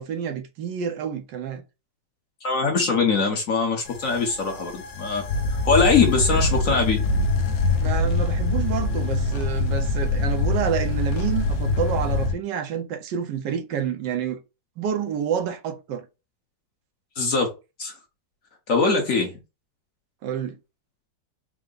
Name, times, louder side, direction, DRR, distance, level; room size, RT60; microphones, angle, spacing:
voice 1, 0.0-1.6 7.8-14.4 14.8-16.1 20.2-20.6, right 8 dB, 80° right, 1.3 m, -28 dB
voice 2, 2.4-5.2 5.6-7.0 17.2-17.5 17.8-18.0 18.7-19.3, left 4 dB, 55° left, 1.2 m, -22 dB
sound 1, 3.9-12.3, left 3 dB, 75° left, 1.3 m, -24 dB
4.6 x 2.1 x 3.8 m
omnidirectional pair, 1.9 m